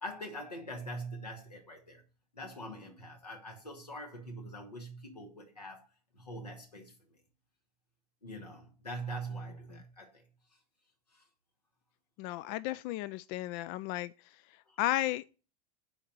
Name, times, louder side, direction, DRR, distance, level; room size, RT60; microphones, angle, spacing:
voice 1, 0.0-2.0 2.3-5.9 6.1-6.9 8.2-10.3 11.1-11.2 14.7-14.8, right 1 dB, 85° left, 2.0 m, -43 dB
voice 2, 12.2-14.1 14.8-15.3, left 16 dB, 45° left, 0.4 m, -33 dB
7.1 x 4.7 x 6.7 m
figure-of-eight pair, 85°, 20 cm